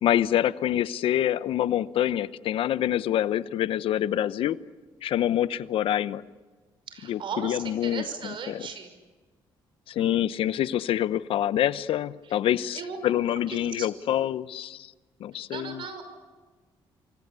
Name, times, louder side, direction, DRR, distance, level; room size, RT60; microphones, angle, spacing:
voice 1, 0.0-4.6 5.0-6.2 7.1-8.0 8.5-8.6 9.9-14.9 15.2-15.8, left 11 dB, 75° left, 16 dB, 0.8 m, -26 dB
voice 2, 6.9-8.9 12.2-12.3 12.7-13.0 13.5-14.1 15.5-16.0, right 6 dB, 60° right, 9 dB, 5.9 m, -37 dB
28.5 x 24.5 x 8.3 m, 1.4 s
cardioid pair, 80°, 10 cm